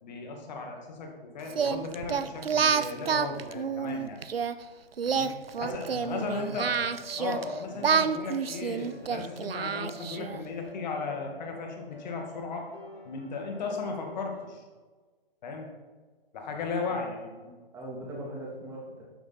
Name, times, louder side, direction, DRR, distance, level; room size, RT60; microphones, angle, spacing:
voice 1, 0.0-4.2 5.1-5.3 5.6-6.7 7.2-12.7 13.0-14.6 15.4-15.7 16.3-17.5, left 4 dB, 50° left, 2 dB, 2.4 m, -36 dB
Singing, 1.5-4.5 5.0-7.4 7.8-10.4, right 6 dB, 75° right, 0.7 m, -28 dB
voice 2, 5.5-6.7 7.7-7.8 16.5-16.6 16.9-17.0 17.7-19.0, right 1 dB, 10° right, -4 dB, 3.0 m, -41 dB
sound 1, 6.3-14.5, left 1 dB, 85° left, 1.9 m, -49 dB
12.0 x 9.7 x 4.3 m, 1.4 s
figure-of-eight pair, 125°, 29 cm